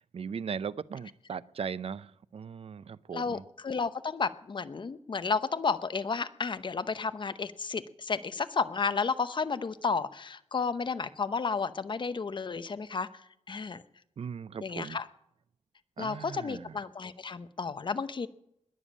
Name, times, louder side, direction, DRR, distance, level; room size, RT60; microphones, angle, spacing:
voice 1, 0.0-3.4 14.2-15.0 16.0-16.8, right 6 dB, 55° right, 18 dB, 0.5 m, -38 dB
voice 2, 3.1-13.1 13.5-13.8 14.6-15.1 16.0-18.3, left 5 dB, 40° left, 13 dB, 0.8 m, -32 dB
20.5 x 7.2 x 8.5 m, 0.76 s
wide cardioid pair, 125°, 12 cm